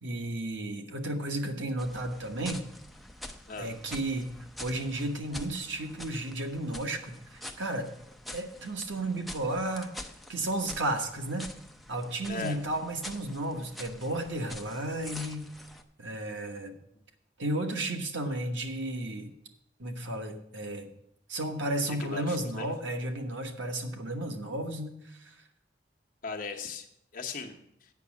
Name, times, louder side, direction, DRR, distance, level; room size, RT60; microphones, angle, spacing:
voice 1, 0.0-2.6 3.6-4.3 4.6-7.9 8.3-9.9 10.3-11.5 11.9-15.5 16.0-16.8 17.4-19.3 19.8-20.9 21.3-25.3, right 1 dB, 80° right, 4 dB, 1.2 m, -33 dB
sound 1, 1.8-15.8, left 1 dB, ahead, 0.5 m, -46 dB
voice 2, 21.9-22.7 26.2-26.9 27.1-27.9, left 4 dB, 50° left, 3 dB, 1.0 m, -38 dB
8.3 x 6.1 x 7.1 m, 0.74 s
head